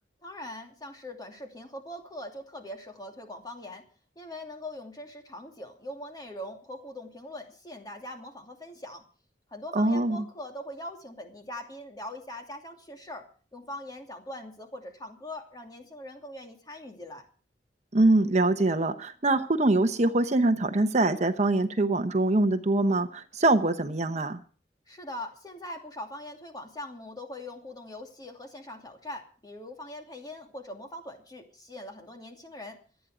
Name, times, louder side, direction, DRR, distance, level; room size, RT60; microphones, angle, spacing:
voice 1, 0.2-3.9 4.2-9.0 9.5-13.3 13.5-17.2 24.9-32.8, left 1 dB, 25° left, 3 dB, 2.7 m, -42 dB
voice 2, 9.7-10.2 17.9-24.4, right 2 dB, 40° right, 9 dB, 0.9 m, -24 dB
26.0 x 9.2 x 5.0 m, 0.41 s
head